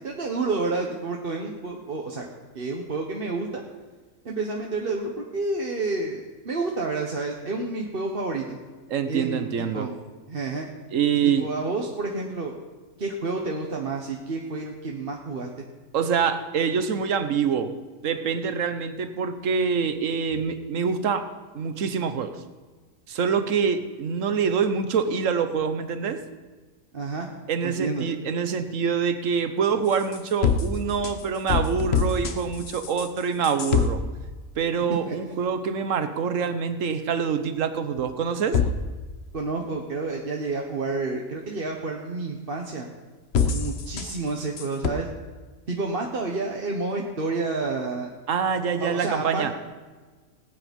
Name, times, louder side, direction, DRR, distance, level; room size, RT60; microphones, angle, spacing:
voice 1, 0.0-2.3 2.5-3.6 4.2-8.6 9.1-9.4 9.7-9.9 10.3-10.7 11.4-12.5 13.0-15.7 26.9-27.3 27.6-28.1 35.1-35.2 39.3-42.9 43.4-45.1 45.7-48.1 48.8-49.5, right 3 dB, 45° right, 1 dB, 1.3 m, -29 dB
voice 2, 8.9-9.9 10.9-11.5 15.9-17.7 18.0-21.3 21.5-22.4 23.1-26.2 27.5-34.0 34.6-38.6 48.3-49.5, right 6 dB, 70° right, 10 dB, 1.3 m, -25 dB
sound 1, 29.9-33.9 38.5-38.7 43.3-44.3 44.6-44.9, left 6 dB, 55° left, 1.1 m, -25 dB
19.0 x 9.0 x 5.3 m, 1.3 s
omnidirectional pair, 1.4 m